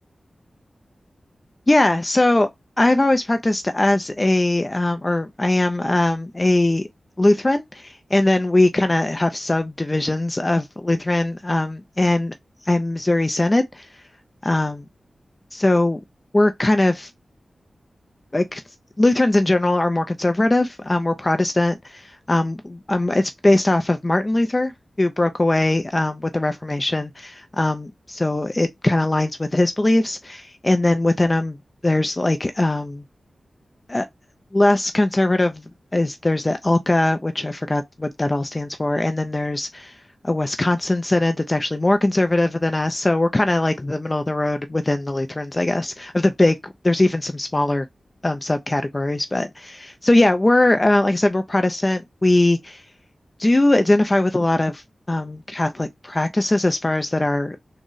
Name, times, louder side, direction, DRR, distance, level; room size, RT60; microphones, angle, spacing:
voice 1, 1.7-2.5 2.8-6.9 7.2-12.3 12.6-13.9 14.4-14.9 15.5-16.0 16.3-17.1 18.3-18.6 19.0-24.7 25.0-31.6 31.8-33.0 33.9-34.1 34.5-35.6 35.9-39.9 40.2-47.9 48.2-52.8 53.4-57.6, left 2 dB, 25° left, 0.3 m, -20 dB
3.7 x 2.0 x 3.8 m
wide cardioid pair, 85°, 0 cm